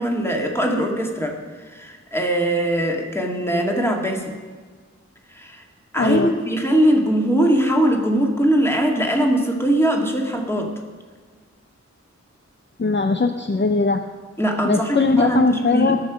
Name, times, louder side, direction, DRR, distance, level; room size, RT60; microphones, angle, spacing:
voice 1, 0.0-4.4 5.3-5.6 5.9-10.8 14.4-15.9, right 1 dB, 10° left, 1 dB, 2.2 m, -21 dB
voice 2, 6.0-6.3 12.8-14.0 14.6-16.0, left 4 dB, 40° left, 6 dB, 0.6 m, -20 dB
19.5 x 6.6 x 5.1 m, 1.5 s
wide cardioid pair, 45°, 29 cm